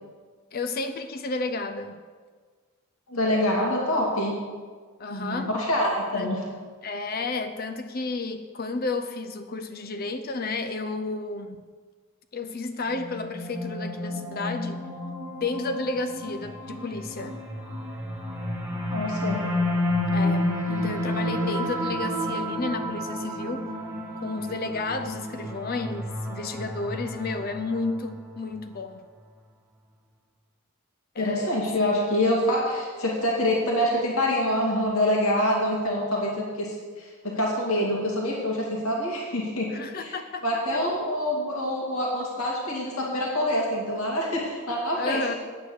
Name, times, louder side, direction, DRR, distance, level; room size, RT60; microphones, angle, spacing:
voice 1, 0.5-2.0 5.0-5.5 6.1-6.4 6.8-11.6 12.3-14.8 15.4-17.4 20.1-23.7 24.2-29.1 31.1-31.6 39.7-40.8 45.0-45.3, left 3 dB, 45° left, 8 dB, 0.6 m, -32 dB
voice 2, 3.1-4.4 5.1-6.4 18.9-19.5 31.2-40.1 40.4-45.3, left 1 dB, 80° left, -2 dB, 2.4 m, -26 dB
sound 1, 12.9-28.2, left 1 dB, 5° right, 1.9 m, -31 dB
9.6 x 9.0 x 6.5 m, 1.5 s
head